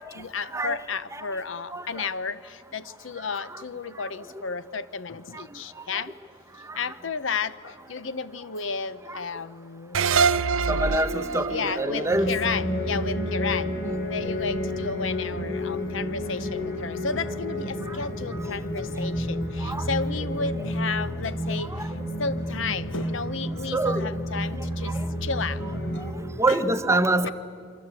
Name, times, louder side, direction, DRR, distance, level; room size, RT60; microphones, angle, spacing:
voice 1, 0.0-6.1 6.7-10.0 11.5-13.8 14.0-21.9 22.2-25.6 25.9-26.0 26.5-26.6 27.2-27.3, left 5 dB, 70° left, 15 dB, 0.8 m, -32 dB
voice 2, 0.5-0.8 1.1-1.3 1.7-2.1 3.3-3.6 3.9-4.1 5.3-5.4 5.9-6.1 6.7-6.8 9.1-9.2 10.3-10.4 10.7-12.3 17.9-18.1 19.6-19.9 20.6-20.7 21.6-22.0 23.7-24.1 24.6-25.1 26.0-26.1 26.4-27.3, right 2 dB, 15° right, 10 dB, 1.0 m, -27 dB
sound 1, 9.9-13.3, right 5 dB, 90° right, 0.6 m, -26 dB
sound 2, 12.1-26.1, left 1 dB, 55° left, 4.9 m, -30 dB
28.0 x 24.0 x 8.3 m, 2.4 s
head